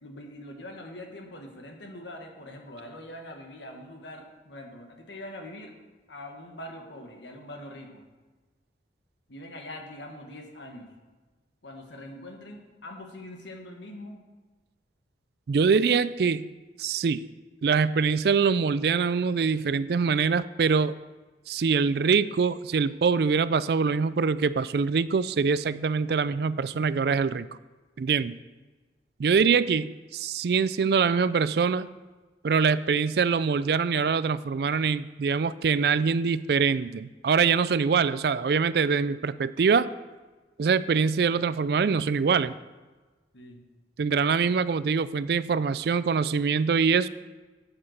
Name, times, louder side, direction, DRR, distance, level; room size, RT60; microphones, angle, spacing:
voice 1, 0.0-5.7 6.1-8.0 9.3-10.9 11.6-14.3 29.2-29.4 29.7-29.8 43.3-43.6, left 1 dB, 80° left, 3 dB, 1.5 m, -43 dB
voice 2, 15.5-16.5 16.8-17.2 17.6-21.0 21.5-27.5 28.0-28.4 29.2-31.9 32.4-39.9 40.6-42.5 44.0-47.1, right 5 dB, 60° right, 16 dB, 0.3 m, -24 dB
8.1 x 7.9 x 6.4 m, 1.3 s
head